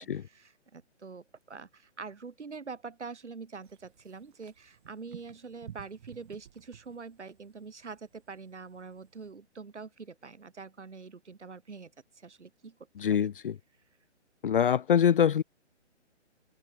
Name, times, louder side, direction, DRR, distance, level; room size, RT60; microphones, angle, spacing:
voice 1, 0.3-11.9 12.2-12.8 13.1-13.3, right 4 dB, 70° right, 5.3 m, -45 dB
sound 1, 3.6-9.3, right 10 dB, 40° right, 6.5 m, -54 dB
voice 2, 13.0-13.6 14.4-15.4, left 8 dB, 45° left, 1.1 m, -24 dB
figure-of-eight pair, 140°, 36 cm